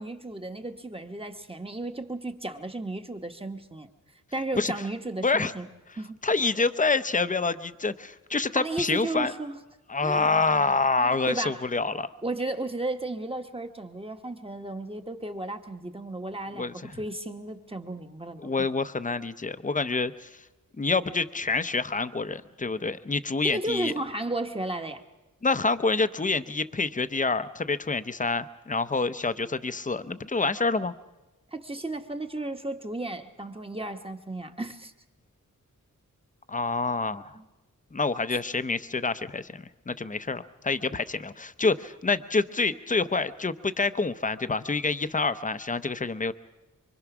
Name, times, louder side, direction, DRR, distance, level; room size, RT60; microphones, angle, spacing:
voice 1, 0.0-3.9 4.3-5.7 6.0-6.2 8.5-9.6 10.0-10.3 11.0-11.7 12.2-18.7 23.4-25.0 31.5-34.9 37.3-37.5, right 2 dB, 15° right, 6 dB, 1.1 m, -34 dB
voice 2, 6.2-9.3 9.9-12.1 16.6-17.0 18.4-20.3 20.8-23.9 25.4-30.9 36.5-37.4 37.9-46.3, left 3 dB, 25° left, 12 dB, 0.7 m, -27 dB
25.0 x 24.5 x 6.0 m, 1.1 s
wide cardioid pair, 125°, 33 cm